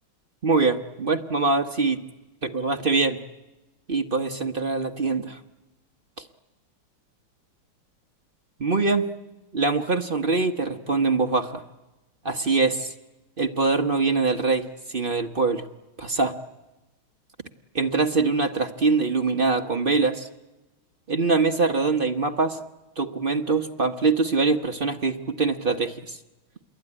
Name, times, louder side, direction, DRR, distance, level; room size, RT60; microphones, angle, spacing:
voice 1, 0.4-2.0 2.4-3.2 3.9-5.4 8.6-9.1 9.5-11.6 12.2-12.9 13.4-14.6 14.9-15.6 16.0-16.3 17.7-20.3 21.1-22.6 23.0-26.2, right 4 dB, 40° right, 5 dB, 0.8 m, -23 dB
27.0 x 21.5 x 9.9 m, 1.1 s
omnidirectional pair, 2.3 m